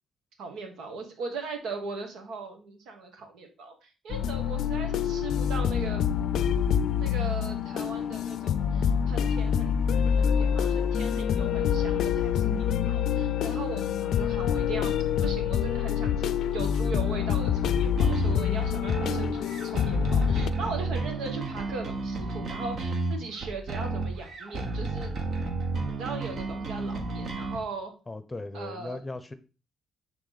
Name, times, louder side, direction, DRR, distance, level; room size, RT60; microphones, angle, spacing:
voice 1, 0.4-6.0 7.0-14.9 15.2-25.2 25.8-27.9 28.5-29.0, right 3 dB, 80° right, 1.7 m, -39 dB
sound 1, 4.1-20.5, left 8 dB, 75° left, 0.5 m, -26 dB
sound 2, 18.0-27.6, right 3 dB, 55° right, 1.4 m, -32 dB
voice 2, 28.1-29.3, left 2 dB, 15° left, 0.7 m, -37 dB
9.6 x 3.6 x 4.1 m
cardioid pair, 90°, 0 cm